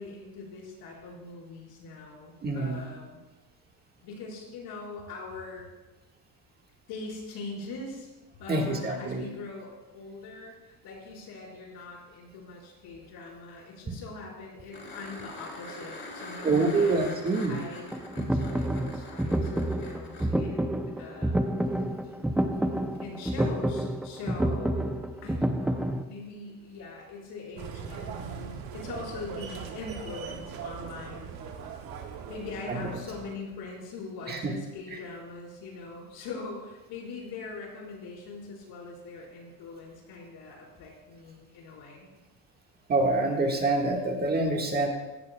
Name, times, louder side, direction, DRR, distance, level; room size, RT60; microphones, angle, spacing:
voice 1, 0.0-3.2 4.0-5.7 6.9-8.1 8.4-21.7 23.0-31.3 32.3-42.1, left 3 dB, 80° left, -3 dB, 4.5 m, -42 dB
voice 2, 2.4-2.8 8.5-9.2 16.4-17.6 32.7-32.8 34.3-34.5 42.9-44.9, right 2 dB, 25° right, 1 dB, 1.6 m, -26 dB
sound 1, 14.7-20.3 22.9-23.0, left 2 dB, 30° left, 3.0 m, -43 dB
sound 2, 17.9-26.0, right 1 dB, 5° right, 0.4 m, -29 dB
sound 3, 27.6-33.4, right 6 dB, 75° right, 1.5 m, -40 dB
16.0 x 14.5 x 2.2 m, 1.1 s
cardioid pair, 145°, 36 cm